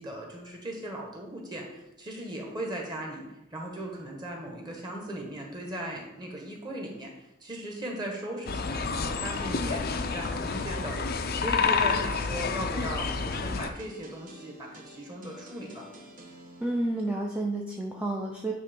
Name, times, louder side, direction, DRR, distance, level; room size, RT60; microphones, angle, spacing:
voice 1, 0.0-3.2 3.5-7.1 7.4-15.8, right 1 dB, 20° right, -1 dB, 1.5 m, -38 dB
sound 1, 8.5-13.7, left 4 dB, 50° left, 0.6 m, -29 dB
sound 2, 9.5-17.1, equal, 45° right, 1.0 m, -49 dB
voice 2, 16.6-18.5, right 1 dB, 5° right, -1 dB, 0.6 m, -30 dB
9.3 x 3.3 x 5.3 m, 0.92 s
head